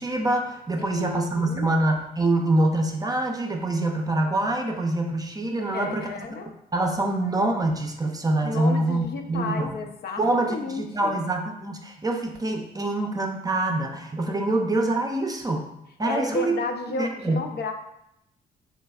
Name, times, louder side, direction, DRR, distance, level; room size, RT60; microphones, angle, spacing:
voice 1, 0.0-6.1 6.7-9.7 10.2-15.7 16.0-16.5 17.0-17.4, right 2 dB, 20° right, 3 dB, 0.5 m, -25 dB
voice 2, 0.8-1.7 5.6-6.5 8.4-11.2 16.0-17.7, left 3 dB, 60° left, 5 dB, 0.5 m, -32 dB
3.5 x 3.1 x 2.3 m, 0.82 s
supercardioid pair, 60°, 19 cm